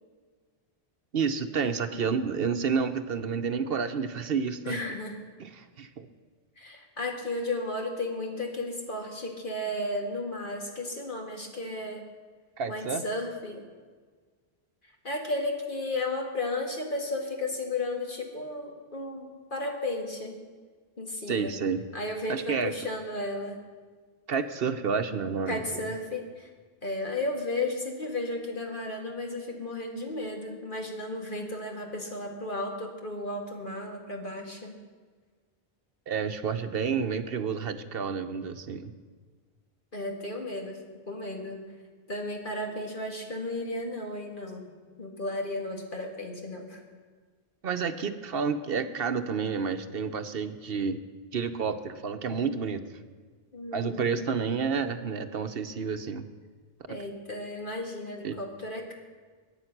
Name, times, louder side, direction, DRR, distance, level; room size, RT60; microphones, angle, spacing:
voice 1, 1.1-4.8 5.4-6.1 12.6-13.0 21.3-21.9 22.3-22.7 24.3-25.8 36.1-38.9 47.6-51.0 51.3-52.8 53.7-56.3 56.9-57.0 58.2-58.3, right 6 dB, 65° right, 9 dB, 1.0 m, -30 dB
voice 2, 4.6-5.2 6.6-12.0 12.7-13.6 15.0-20.4 21.0-21.6 21.9-23.6 25.5-26.5 26.8-34.8 39.9-40.8 41.1-41.6 42.1-44.7 45.0-46.8 53.5-54.1 56.9-58.9, left 2 dB, 50° left, 1 dB, 2.2 m, -34 dB
22.5 x 9.0 x 6.0 m, 1.5 s
omnidirectional pair, 1.1 m